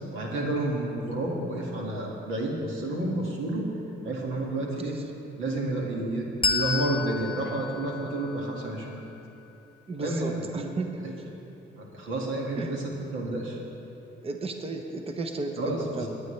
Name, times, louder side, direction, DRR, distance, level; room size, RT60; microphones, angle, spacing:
voice 1, 0.1-3.7 4.0-5.0 5.4-9.0 10.0-10.7 11.8-12.8 13.1-13.6 15.6-16.1, right 2 dB, 85° right, -1 dB, 2.0 m, -30 dB
voice 2, 4.6-5.1 9.9-11.4 12.5-12.8 14.2-16.1, right 3 dB, 30° right, 5 dB, 0.8 m, -34 dB
Bell, 6.4-9.5, left 5 dB, 25° left, 1.0 m, -32 dB
20.0 x 9.3 x 3.3 m, 3.0 s
cardioid pair, 90°, 20 cm